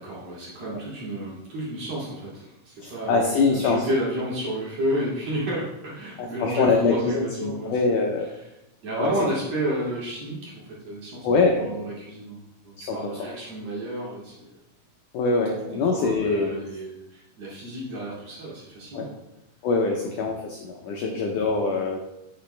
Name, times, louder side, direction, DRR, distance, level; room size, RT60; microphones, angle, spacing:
voice 1, 0.0-8.0 8.8-11.3 11.5-14.6 15.7-19.1 19.9-20.0 20.9-21.2, right 1 dB, 45° right, -7 dB, 3.2 m, -31 dB
voice 2, 2.8-3.9 6.2-8.3 9.0-9.1 11.2-11.6 12.8-13.0 15.1-16.6 18.9-19.1 19.6-22.0, left 4 dB, 85° left, 1 dB, 1.8 m, -23 dB
10.0 x 6.4 x 3.3 m, 0.92 s
omnidirectional pair, 4.7 m